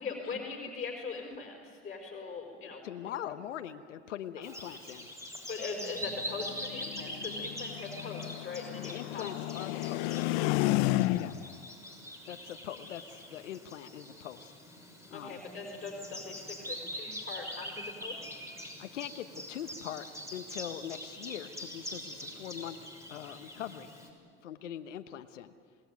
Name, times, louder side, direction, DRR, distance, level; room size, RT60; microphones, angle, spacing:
voice 1, 0.0-3.2 5.5-9.3 15.1-18.4, left 4 dB, 20° left, 0 dB, 4.9 m, -41 dB
voice 2, 2.8-5.1 8.8-10.2 11.1-11.4 12.3-14.5 15.1-15.4 18.8-20.0 20.3-22.8 23.1-23.9 24.4-25.5, left 10 dB, 90° left, 9 dB, 1.2 m, -42 dB
Bird vocalization bird call bird song, 4.4-24.1, equal, 10° right, 6.3 m, -44 dB
sound 1, 6.1-11.6, left 17 dB, 65° left, 0.9 m, -32 dB
27.0 x 20.0 x 9.4 m, 2.1 s
hypercardioid pair, 90°, 35 cm